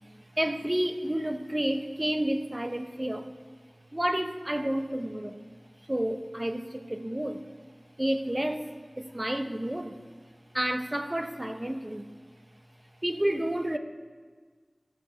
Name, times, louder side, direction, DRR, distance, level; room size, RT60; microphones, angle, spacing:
voice 1, 0.1-3.3 3.9-5.4 5.9-7.5 8.0-10.0 10.5-12.1 13.0-13.8, right 1 dB, 25° right, 8 dB, 0.7 m, -30 dB
12.5 x 6.2 x 6.6 m, 1.5 s
wide cardioid pair, 45°, 0 cm